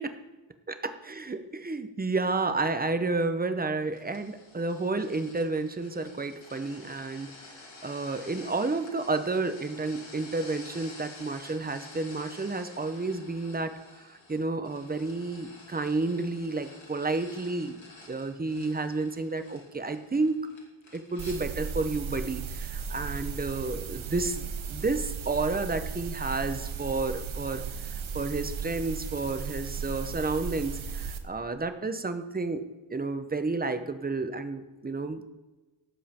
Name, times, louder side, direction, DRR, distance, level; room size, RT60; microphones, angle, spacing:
voice 1, 0.8-7.3 7.8-17.8 18.1-20.4 20.9-27.6 28.1-35.3, right 3 dB, 20° right, 9 dB, 0.8 m, -31 dB
sound 1, 3.9-21.4, left 2 dB, 70° left, 3.1 m, -50 dB
sound 2, 21.2-31.2, right 6 dB, 75° right, 1.0 m, -36 dB
17.5 x 7.4 x 4.3 m, 1.2 s
wide cardioid pair, 130°, 48 cm